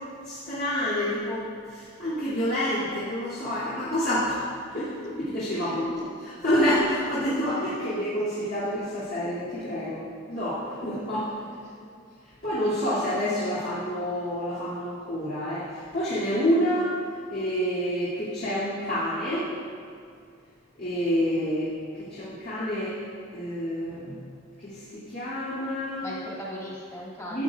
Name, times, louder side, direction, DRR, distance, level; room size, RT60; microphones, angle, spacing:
voice 1, 0.2-4.4 4.7-5.9 6.2-10.0 10.3-11.3 12.4-16.9 17.3-19.5 20.8-21.7 22.0-22.9 23.3-24.2 24.6-26.0 27.3-27.4, equal, 55° left, -12 dB, 2.7 m, -28 dB
voice 2, 7.5-8.1 11.6-11.9 26.0-27.4, equal, 20° left, -7 dB, 2.4 m, -39 dB
15.0 x 8.7 x 2.4 m, 2.3 s
head